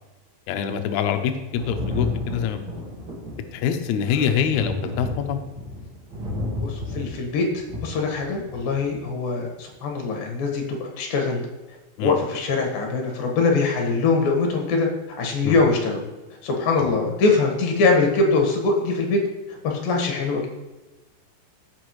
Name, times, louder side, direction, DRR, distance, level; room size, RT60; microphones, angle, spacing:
voice 1, 0.5-2.6 3.5-5.4 12.0-12.2 15.4-15.6 16.8-16.9, left 8 dB, 90° left, 6 dB, 1.6 m, -25 dB
Thunder, 1.6-8.9 10.0-10.1, left 1 dB, 40° right, 1.9 m, -32 dB
voice 2, 6.6-11.4 12.0-14.9 15.2-16.1 16.4-19.2 19.5-20.5, left 3 dB, 70° left, 1 dB, 3.1 m, -22 dB
15.0 x 5.1 x 3.1 m, 1.1 s
omnidirectional pair, 4.2 m